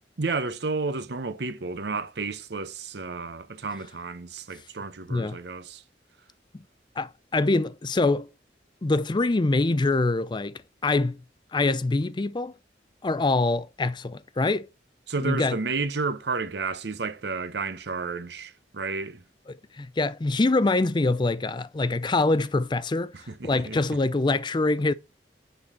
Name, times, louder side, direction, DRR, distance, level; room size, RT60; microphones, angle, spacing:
voice 1, 0.2-5.8 15.1-19.2 23.1-23.8, right 4 dB, 65° right, 0.8 m, -31 dB
voice 2, 7.0-8.3 8.8-11.2 11.5-12.5 13.0-14.7 15.2-15.6 19.5-23.1 23.4-24.9, left 2 dB, 25° left, 0.4 m, -24 dB
9.5 x 4.1 x 4.2 m
head